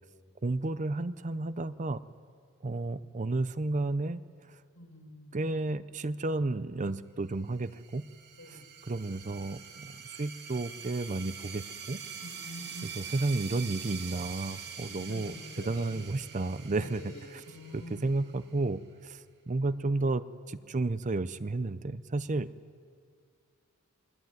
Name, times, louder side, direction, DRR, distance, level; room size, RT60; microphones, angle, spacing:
voice 1, 0.4-2.0 2.6-4.6 5.3-8.0 8.5-12.0 12.8-15.3 15.7-17.4 17.7-22.5, right 2 dB, 35° right, 14 dB, 0.6 m, -32 dB
voice 2, 4.7-5.4 8.4-8.6 12.1-13.0 14.9-16.1 16.8-18.0, left 1 dB, 70° left, 3 dB, 4.8 m, -47 dB
sound 1, 7.5-18.7, right 7 dB, 50° right, 2.4 m, -45 dB
28.0 x 21.5 x 9.4 m, 2.2 s
head